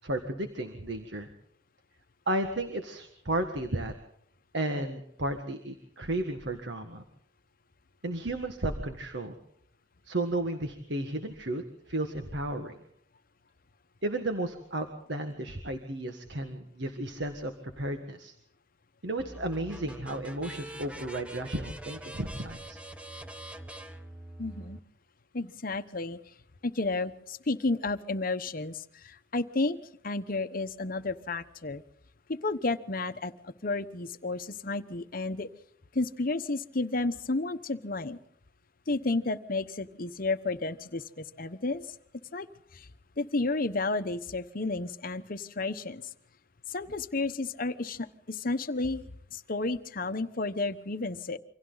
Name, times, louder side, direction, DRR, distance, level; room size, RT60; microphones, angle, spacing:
voice 1, 0.0-1.3 2.3-3.9 4.5-7.0 8.0-9.3 10.1-12.8 14.0-18.3 19.0-22.8, right 1 dB, 70° right, 5 dB, 1.7 m, -33 dB
sound 1, 19.2-24.8, right 1 dB, 5° right, 1.1 m, -44 dB
voice 2, 24.4-24.8 25.3-26.2 26.6-29.8 30.0-31.8 32.3-35.5 35.9-38.2 38.9-41.8 42.3-42.5 42.7-42.9 43.2-46.1 46.7-49.0 49.3-51.4, left 3 dB, 50° left, 11 dB, 1.0 m, -32 dB
28.5 x 25.0 x 4.0 m, 0.67 s
head